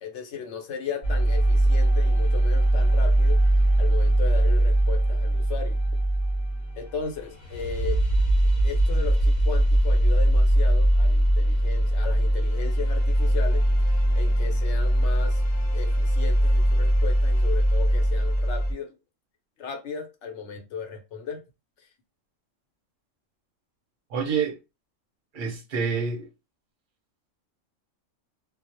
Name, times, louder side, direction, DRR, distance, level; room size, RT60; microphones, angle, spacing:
voice 1, 0.0-3.4 3.8-5.8 6.8-8.0 8.6-15.4 15.7-18.9 19.6-21.4 21.8-21.9, left 6 dB, 65° left, 0.9 m, -36 dB
sound 1, 1.0-18.7, right 1 dB, 40° left, 0.9 m, -21 dB
voice 2, 24.1-24.6 25.3-26.3, right 6 dB, 50° right, 0.6 m, -27 dB
2.3 x 2.0 x 2.8 m
omnidirectional pair, 1.4 m